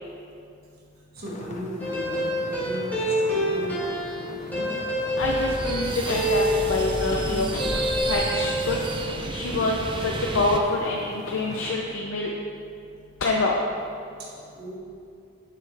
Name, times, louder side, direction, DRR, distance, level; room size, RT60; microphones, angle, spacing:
voice 1, 1.1-3.8 4.1-4.7 14.2-14.8, equal, 55° right, -4 dB, 1.3 m, -37 dB
sound 1, 1.2-11.7, left 2 dB, 35° left, 0.5 m, -43 dB
sound 2, 1.8-7.3 7.6-8.8, equal, 10° left, 1.4 m, -27 dB
voice 2, 5.2-7.5 8.1-8.8 9.3-9.8 10.0-12.3 13.2-13.6, left 3 dB, 85° left, -1 dB, 0.5 m, -26 dB
sound 3, 5.2-10.6, right 3 dB, 25° right, 0.4 m, -31 dB
7.5 x 5.7 x 3.3 m, 2.5 s
head